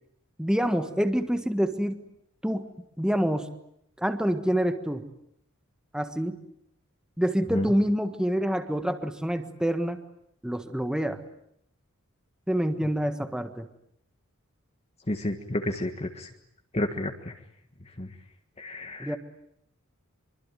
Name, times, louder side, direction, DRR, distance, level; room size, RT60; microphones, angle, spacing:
voice 1, 0.4-2.0 2.4-2.7 3.0-3.5 4.0-5.1 5.9-6.4 7.2-10.0 10.4-11.2 12.5-13.7 19.0-19.2, equal, 5° right, 8 dB, 1.5 m, -27 dB
voice 2, 15.1-16.3 16.7-17.1 18.0-18.1 18.6-19.1, left 1 dB, 30° left, 4 dB, 1.6 m, -30 dB
25.0 x 24.0 x 9.2 m, 0.74 s
head